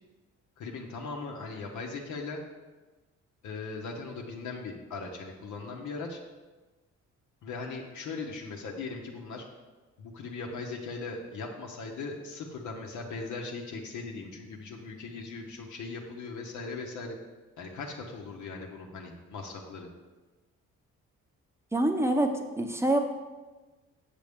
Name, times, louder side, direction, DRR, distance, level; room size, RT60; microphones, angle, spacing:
voice 1, 0.6-2.4 3.4-6.2 7.4-9.4 10.0-17.2 17.6-19.9, left 4 dB, 75° left, 0 dB, 1.1 m, -39 dB
voice 2, 21.7-23.0, right 1 dB, 10° right, 4 dB, 0.8 m, -26 dB
7.4 x 6.8 x 3.6 m, 1.2 s
cardioid pair, 90°, 30 cm